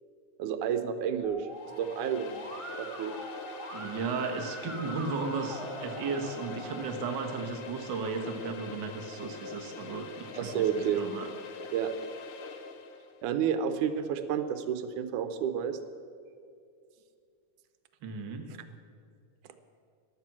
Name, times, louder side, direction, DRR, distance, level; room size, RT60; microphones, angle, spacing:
voice 1, 0.4-1.5 1.8-2.4 2.8-3.2 10.4-11.0 11.7-11.9 13.2-15.8, right 8 dB, 80° right, 9 dB, 2.2 m, -30 dB
Musical instrument, 1.2-6.8, right 1 dB, 40° right, 0.4 m, -43 dB
sound 1, 1.5-13.1, left 5 dB, 80° left, 2.4 m, -44 dB
voice 2, 3.7-11.7 18.0-18.5, right 4 dB, 55° right, 4 dB, 1.3 m, -35 dB
14.5 x 11.5 x 6.0 m, 2.4 s
omnidirectional pair, 3.5 m